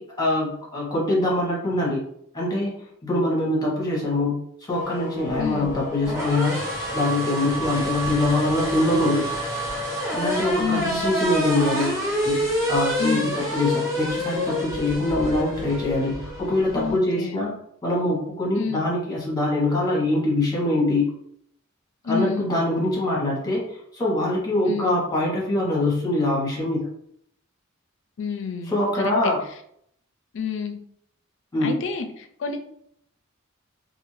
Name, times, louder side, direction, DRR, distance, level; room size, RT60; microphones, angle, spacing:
voice 1, 0.0-2.0 2.3-6.6 6.9-9.2 10.1-17.5 17.8-21.1 22.0-26.9 28.7-29.4 31.5-31.7, left 1 dB, 20° left, -4 dB, 1.0 m, -24 dB
sound 1, 4.7-17.0, equal, 15° right, 0.9 m, -28 dB
voice 2, 5.4-5.7 10.6-11.0 13.0-13.3 16.7-17.4 18.6-18.8 22.0-22.5 24.7-25.0 28.2-29.1 30.3-30.8 31.6-32.6, left 5 dB, 60° left, 7 dB, 0.4 m, -29 dB
2.5 x 2.5 x 3.1 m, 0.69 s
head